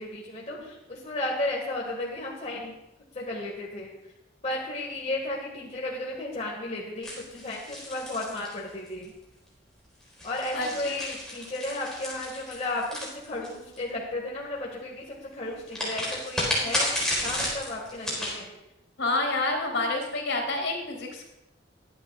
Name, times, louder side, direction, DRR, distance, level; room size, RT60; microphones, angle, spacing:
voice 1, 0.0-2.8 3.1-3.9 4.4-9.1 10.2-12.8 13.3-15.0 15.3-18.5, left 2 dB, 35° left, -3 dB, 1.9 m, -34 dB
sound 1, 7.0-9.0 10.0-13.8 15.7-18.4, left 1 dB, 5° left, 4.2 m, -32 dB
voice 2, 10.5-11.0 19.0-21.3, left 2 dB, 75° left, 1 dB, 3.4 m, -28 dB
22.5 x 8.4 x 2.5 m, 0.94 s
head